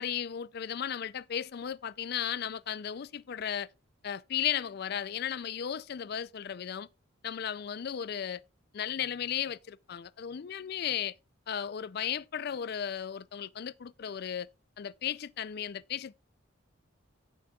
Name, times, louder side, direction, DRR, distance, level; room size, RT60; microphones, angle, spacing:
voice 1, 0.0-3.7 4.0-6.9 7.2-8.4 8.7-11.1 11.5-14.5 14.8-16.1, left 9 dB, 50° left, 0.4 m, -35 dB
17.5 x 6.1 x 2.3 m
head